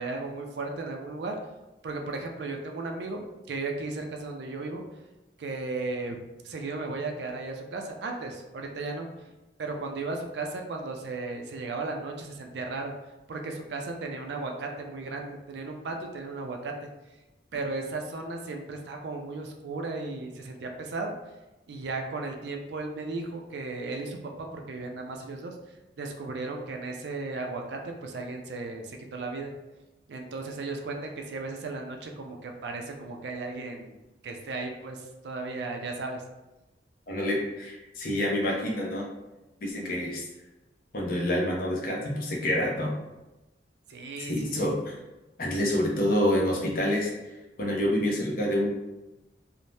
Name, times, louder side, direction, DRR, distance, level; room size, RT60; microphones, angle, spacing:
voice 1, 0.0-1.4 1.8-4.8 5.4-6.2 6.4-9.1 9.6-12.9 13.3-16.7 17.5-21.1 21.7-25.5 26.0-29.5 30.1-34.0 34.2-36.2 43.9-44.8, right 3 dB, 70° right, 3 dB, 0.4 m, -35 dB
voice 2, 37.1-39.1 39.6-40.2 40.9-42.9 44.2-44.9 45.4-47.1 47.6-48.7, left 1 dB, 50° left, -2 dB, 0.6 m, -27 dB
2.6 x 2.1 x 3.2 m, 1.0 s
head